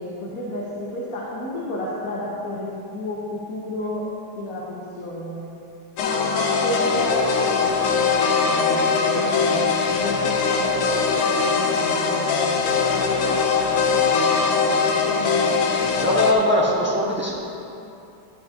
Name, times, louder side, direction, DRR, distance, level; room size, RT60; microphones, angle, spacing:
voice 1, 0.0-4.1 4.4-5.4 6.0-15.6, equal, 50° left, -6 dB, 1.4 m, -31 dB
sound 1, 6.0-16.3, left 5 dB, 75° left, 1.5 m, -21 dB
voice 2, 15.9-17.3, left 1 dB, 5° right, -6 dB, 1.0 m, -20 dB
11.0 x 10.5 x 2.9 m, 2.7 s
omnidirectional pair, 2.3 m